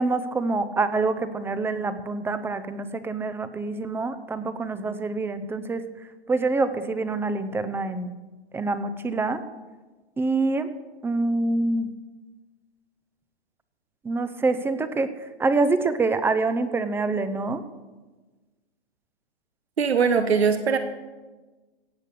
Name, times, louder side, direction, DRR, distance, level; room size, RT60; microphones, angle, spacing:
voice 1, 0.0-5.8 6.3-8.1 8.5-9.4 10.2-10.7 11.0-11.9 14.0-15.1 15.4-17.6, right 3 dB, 5° right, 12 dB, 0.7 m, -26 dB
voice 2, 19.8-20.8, right 6 dB, 85° right, 8 dB, 1.3 m, -21 dB
16.5 x 8.2 x 6.7 m, 1.2 s
hypercardioid pair, 125°, 31 cm